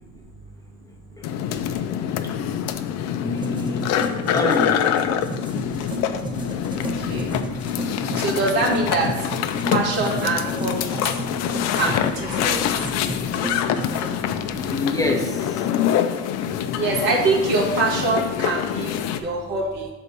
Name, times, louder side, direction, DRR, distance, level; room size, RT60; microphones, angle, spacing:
sound 1, 1.2-19.2, left 9 dB, 60° left, 0.6 m, -25 dB
voice 1, 3.2-4.0 4.3-4.9 14.4-15.7, left 2 dB, 10° left, 1 dB, 1.0 m, -26 dB
sound 2, 3.4-14.2, equal, 15° right, 0.8 m, -32 dB
voice 2, 6.8-7.3 8.1-9.1 9.7-11.1 11.7-12.6 16.8-19.9, right 3 dB, 75° right, -3 dB, 2.1 m, -24 dB
5.2 x 4.2 x 6.0 m, 1.1 s
supercardioid pair, 95°, 31 cm